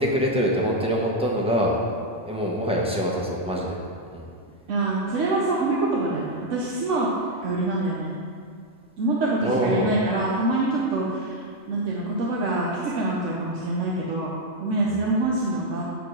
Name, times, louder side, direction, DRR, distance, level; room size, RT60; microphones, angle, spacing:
voice 1, 0.0-1.8 2.3-3.8 4.1-4.3 9.4-9.9 14.8-15.0, equal, 5° right, -3 dB, 1.0 m, -24 dB
voice 2, 4.7-7.1 7.4-8.2 9.0-14.3 14.6-15.9, right 2 dB, 85° right, -4 dB, 1.2 m, -25 dB
9.0 x 3.8 x 6.3 m, 2.3 s
omnidirectional pair, 1.2 m